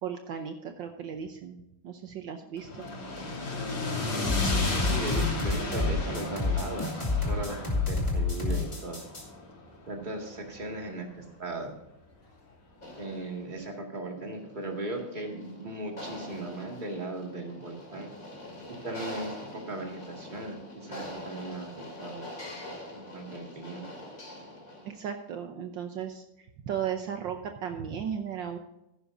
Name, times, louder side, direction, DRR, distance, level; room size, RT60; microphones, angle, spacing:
voice 1, 0.0-2.9 24.8-28.6, right 8 dB, 70° right, 5 dB, 1.5 m, -36 dB
sound 1, 2.6-10.8, left 2 dB, 80° left, 3.8 m, -34 dB
sound 2, 4.2-9.2, left 3 dB, 15° left, 2.3 m, -28 dB
voice 2, 4.4-9.0 9.9-11.7 13.0-18.1 18.7-22.3 22.9-23.9, right 2 dB, 25° right, 1 dB, 2.2 m, -38 dB
sound 3, 12.8-25.1, left 1 dB, 45° left, 3.2 m, -44 dB
15.0 x 11.0 x 2.7 m, 0.88 s
omnidirectional pair, 2.2 m